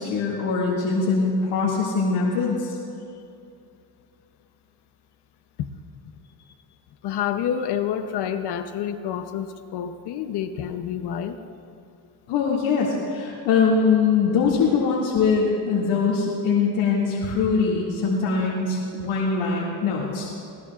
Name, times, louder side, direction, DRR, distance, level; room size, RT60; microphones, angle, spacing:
voice 1, 0.0-2.8 12.3-20.3, left 5 dB, 75° left, -6 dB, 2.4 m, -22 dB
voice 2, 7.0-11.4 19.0-19.1, left 9 dB, 55° left, 8 dB, 0.8 m, -28 dB
21.0 x 18.5 x 2.4 m, 2.6 s
cardioid pair, 150°, 48 cm